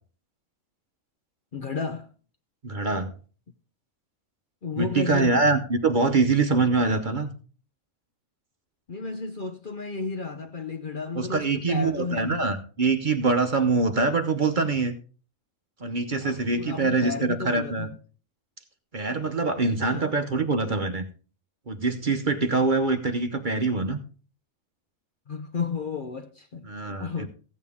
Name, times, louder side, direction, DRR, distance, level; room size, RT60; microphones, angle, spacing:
voice 1, 1.5-2.1 4.6-5.4 8.9-12.5 16.2-17.9 19.9-20.1 25.3-26.7 27.0-27.3, left 4 dB, 45° left, 0.8 m, -32 dB
voice 2, 2.6-3.1 4.8-7.3 11.1-14.9 15.8-17.9 18.9-21.0 21.7-24.0 26.6-27.3, right 3 dB, 40° right, 1.0 m, -24 dB
15.0 x 9.1 x 3.6 m
omnidirectional pair, 1.4 m